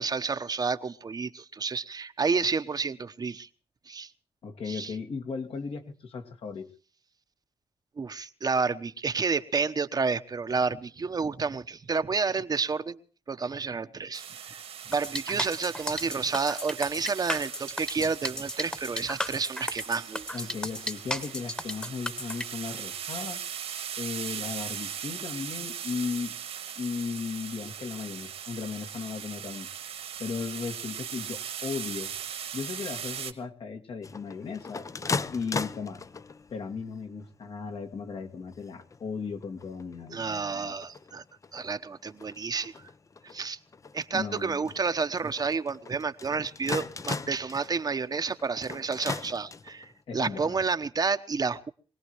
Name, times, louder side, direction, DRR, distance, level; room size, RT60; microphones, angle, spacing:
voice 1, 0.0-3.5 3.9-4.1 4.7-4.9 8.0-13.0 13.3-14.6 14.9-20.3 40.1-41.2 41.5-42.7 43.3-43.6 43.9-51.7, right 4 dB, 40° right, 9 dB, 1.0 m, -30 dB
voice 2, 4.4-6.7 20.3-23.4 24.0-26.3 26.8-29.7 30.2-32.1 32.5-34.8 35.3-36.0 36.5-40.8 44.1-44.7 50.1-50.6, left 5 dB, 70° left, 5 dB, 2.2 m, -36 dB
sound 1, 14.1-33.3, right 8 dB, 75° right, 2.0 m, -39 dB
sound 2, 14.9-22.4, left 1 dB, 10° left, 1.3 m, -34 dB
sound 3, 34.0-36.6 37.2-37.7 38.2-38.3 38.5-39.0 39.4-49.9, left 4 dB, 30° left, 0.7 m, -38 dB
24.0 x 18.0 x 3.1 m, 0.41 s
cardioid pair, 80°, 10 cm